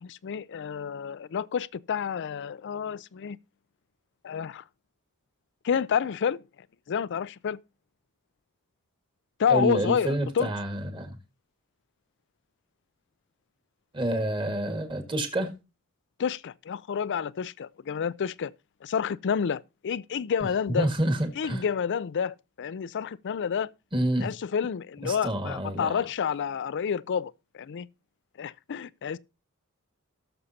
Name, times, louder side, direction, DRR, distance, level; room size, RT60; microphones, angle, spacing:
voice 1, 0.0-3.4 4.2-4.6 5.6-6.4 6.9-7.6 9.4-10.5 16.2-18.5 18.8-20.9 21.4-23.7 24.2-27.9 28.4-29.2, left 7 dB, 55° left, 0.4 m, -29 dB
voice 2, 9.5-11.2 13.9-15.5 20.8-21.6 23.9-24.3 25.0-26.1, right 1 dB, 20° right, 1.8 m, -28 dB
18.0 x 6.9 x 2.8 m
head